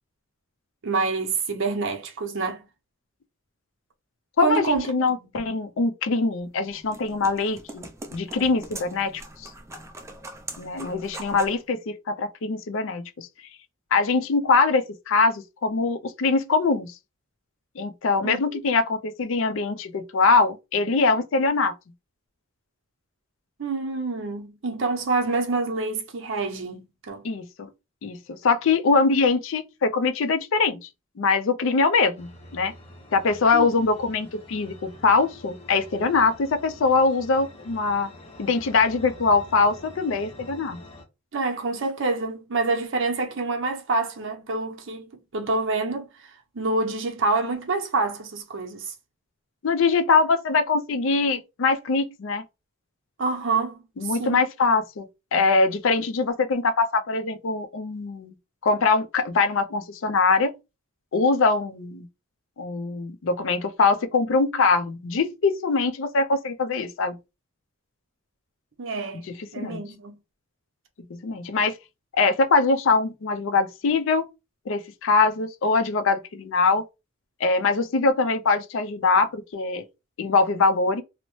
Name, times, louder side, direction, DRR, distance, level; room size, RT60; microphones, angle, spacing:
voice 1, 0.8-2.6 4.4-4.9 5.2-5.3 18.2-18.4 23.6-27.2 33.5-33.7 41.3-46.1 46.5-48.9 53.2-54.4 68.8-69.3 69.5-70.2, right 3 dB, 65° right, 0.7 m, -27 dB
voice 2, 4.4-7.9 8.1-9.5 10.6-13.3 13.9-16.9 17.8-21.7 27.2-27.7 28.0-28.2 28.4-30.9 31.2-32.7 33.1-38.1 38.4-40.8 49.6-52.4 54.0-55.1 55.3-58.3 58.6-60.5 61.1-62.1 62.6-67.2 69.6-69.8 71.1-71.7 72.1-74.2 74.7-76.8 77.4-79.9 80.2-81.0, left 4 dB, 65° left, 0.4 m, -23 dB
sound 1, 6.4-11.6, right 2 dB, 15° right, 0.3 m, -42 dB
sound 2, 32.1-41.0, left 1 dB, 30° left, 0.7 m, -46 dB
2.7 x 2.1 x 3.0 m
head